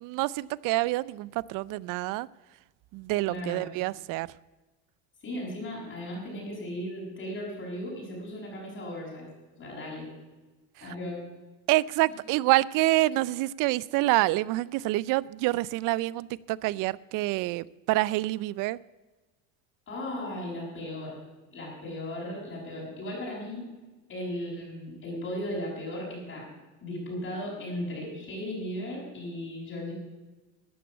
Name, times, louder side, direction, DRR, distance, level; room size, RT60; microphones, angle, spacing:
voice 1, 0.0-2.3 2.9-4.3 10.8-10.9 11.7-18.8, right 19 dB, 60° right, 22 dB, 0.5 m, -27 dB
voice 2, 3.3-3.6 5.2-9.3 9.6-10.1 10.8-11.2 19.9-21.2 21.5-23.7 24.1-26.5 26.8-29.9, left 1 dB, 35° left, -4 dB, 6.5 m, -36 dB
13.5 x 9.3 x 8.3 m, 1.2 s
cardioid pair, 130°, 37 cm